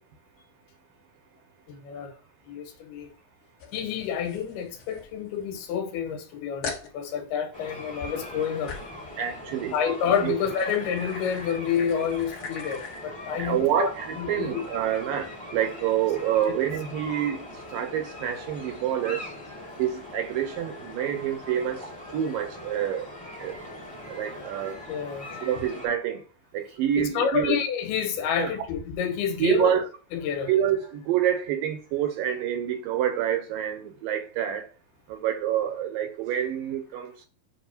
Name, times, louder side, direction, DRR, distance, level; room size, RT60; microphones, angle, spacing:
voice 1, 1.7-2.1 2.5-3.1 3.7-8.8 9.7-13.9 14.2-14.6 24.9-25.4 27.0-29.7 30.1-30.5, left 7 dB, 85° left, 3.2 m, -29 dB
sound 1, 3.6-5.7 6.1-6.2 6.6-6.9 8.7-9.0 9.8-13.0, left 5 dB, 50° left, 2.2 m, -41 dB
sound 2, 7.5-25.9, left 1 dB, 5° left, 1.1 m, -41 dB
voice 2, 9.2-9.7 10.2-10.4 13.4-19.3 19.8-23.1 23.4-23.6 24.1-24.8 25.4-26.2 26.5-27.6 28.4-28.5 29.4-29.8 30.5-34.7 35.1-37.3, right 10 dB, 75° right, 2.2 m, -27 dB
7.8 x 2.7 x 5.9 m
omnidirectional pair, 4.5 m